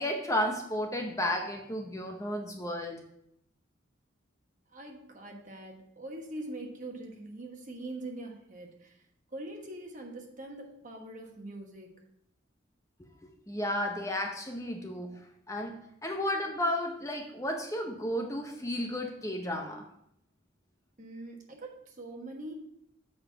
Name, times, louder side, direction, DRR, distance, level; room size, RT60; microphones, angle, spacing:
voice 1, 0.0-3.0 13.0-13.1 13.5-15.7 16.0-19.8, left 1 dB, 15° left, 3 dB, 0.7 m, -33 dB
voice 2, 4.7-9.0 9.3-12.0 21.0-22.5, right 1 dB, 40° right, 1 dB, 1.3 m, -43 dB
7.1 x 5.5 x 5.7 m, 0.77 s
head